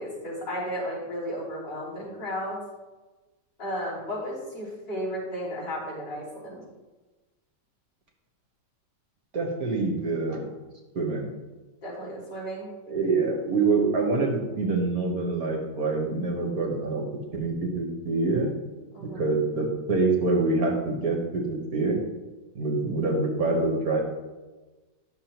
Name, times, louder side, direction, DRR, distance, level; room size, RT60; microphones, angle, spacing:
voice 1, 0.0-2.6 3.6-6.6 11.8-12.7 18.9-19.2, equal, 75° left, -8 dB, 3.9 m, -34 dB
voice 2, 9.3-10.5 10.9-11.3 12.9-17.0 17.3-18.5 19.0-22.0 22.5-24.0, right 3 dB, 55° right, 0 dB, 1.8 m, -26 dB
11.0 x 6.7 x 3.0 m, 1.2 s
omnidirectional pair, 1.9 m